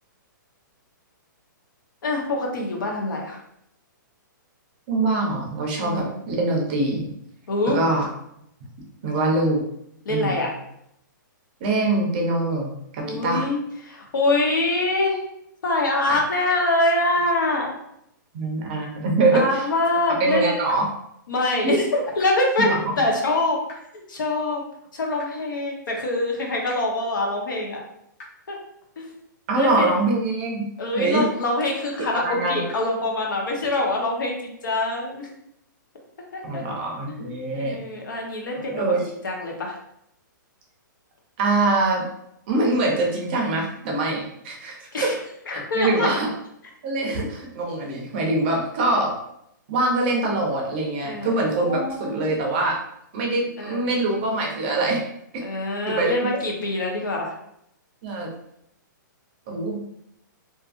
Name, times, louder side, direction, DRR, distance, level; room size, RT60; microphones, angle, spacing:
voice 1, 2.0-3.4 5.8-6.2 7.5-7.8 10.0-10.5 13.0-15.2 15.6-17.7 19.3-20.5 21.3-21.8 22.2-23.6 23.9-24.6 24.9-27.8 28.5-28.6 29.0-29.1 29.5-29.9 30.8-35.3 36.3-36.6 37.1-38.9 39.2-39.7 44.9-45.2 45.5-46.1 51.0-52.3 53.6-53.8 55.4-57.3, left 2 dB, 75° left, 0 dB, 0.9 m, -25 dB
voice 2, 4.9-7.1 7.7-8.1 9.0-9.6 10.1-10.4 11.6-13.5 16.1-16.2 18.3-19.6 20.2-20.8 21.6-21.8 22.7-22.8 29.5-30.7 30.9-31.3 32.0-32.6 36.4-37.8 38.6-39.1 41.4-42.0 42.5-45.1 45.5-46.3 46.8-49.1 49.7-52.8 53.1-55.0 55.3-55.4 55.9-56.4 58.0-58.3 59.5-59.8, right 2 dB, 30° right, 0 dB, 0.5 m, -24 dB
sound 1, 20.7-20.8 22.2-22.3 23.7-23.8 25.2-25.3 26.7-26.8 28.2-28.3 29.7-29.8 31.2-31.3 32.7-32.8, left 2 dB, 45° left, 0.9 m, -41 dB
2.6 x 2.5 x 2.4 m, 0.77 s
hypercardioid pair, 165°, 11 cm